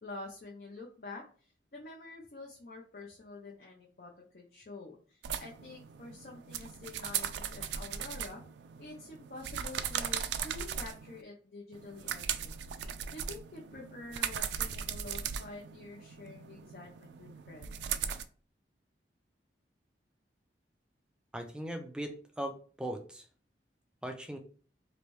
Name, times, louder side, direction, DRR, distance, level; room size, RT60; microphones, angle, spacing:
voice 1, 0.0-8.4 8.8-17.7, left 2 dB, 50° left, -2 dB, 0.6 m, -48 dB
sound 1, 5.2-11.2 11.7-18.2, right 8 dB, 80° right, 0.3 m, -38 dB
voice 2, 21.3-23.3 24.0-24.4, right 1 dB, 5° right, 5 dB, 0.4 m, -39 dB
3.2 x 2.6 x 3.0 m, 0.41 s
head